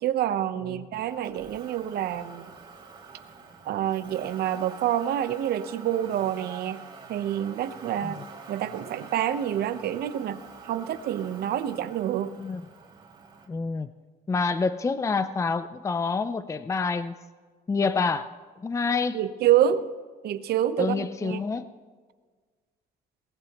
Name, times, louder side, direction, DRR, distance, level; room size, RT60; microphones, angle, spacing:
voice 1, 0.0-2.5 3.7-6.8 7.1-8.2 8.5-10.4 10.7-12.3 19.1-19.8 20.2-21.4, right 11 dB, 70° right, 12 dB, 0.9 m, -27 dB
Motor vehicle (road), 0.9-13.5, right 5 dB, 30° right, 3.8 m, -46 dB
voice 2, 13.5-13.9 14.3-17.2 17.7-18.3 18.6-19.2 20.8-21.7, left 4 dB, 20° left, 13 dB, 0.5 m, -27 dB
22.5 x 18.5 x 3.0 m, 1.5 s
cardioid pair, 110°, 17 cm